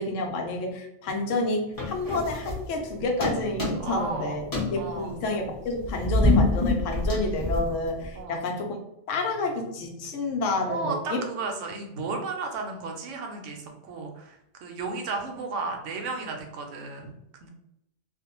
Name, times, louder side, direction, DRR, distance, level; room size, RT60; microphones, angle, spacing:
voice 1, 0.0-8.8 9.1-11.2, left 2 dB, 80° left, 2 dB, 1.0 m, -29 dB
sound 1, 1.8-2.9 3.2-4.1 4.4-8.2, left 2 dB, 25° left, 0.5 m, -26 dB
voice 2, 3.8-4.5 4.8-5.2 8.2-8.5 10.7-17.1 17.4-17.5, right 4 dB, 80° right, 3 dB, 0.9 m, -34 dB
2.5 x 2.1 x 2.8 m, 0.83 s
omnidirectional pair, 1.3 m